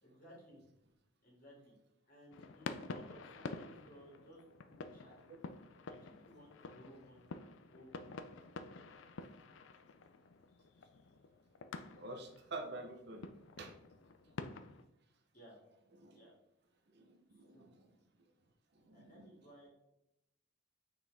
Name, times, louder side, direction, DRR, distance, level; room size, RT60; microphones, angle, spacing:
voice 1, 0.0-0.6 1.2-1.7 2.1-5.1 5.9-7.3 7.7-8.2 15.3-15.6 16.1-16.3 17.3-17.7 18.9-19.7, equal, 45° left, -3 dB, 2.3 m, -59 dB
sound 1, 2.3-14.8, left 4 dB, 75° left, 0.4 m, -49 dB
voice 2, 11.9-13.3 13.6-13.7 15.9-16.3 16.9-18.0 18.7-19.5, right 2 dB, 55° right, 4 dB, 0.8 m, -48 dB
6.0 x 4.7 x 3.4 m, 0.85 s
head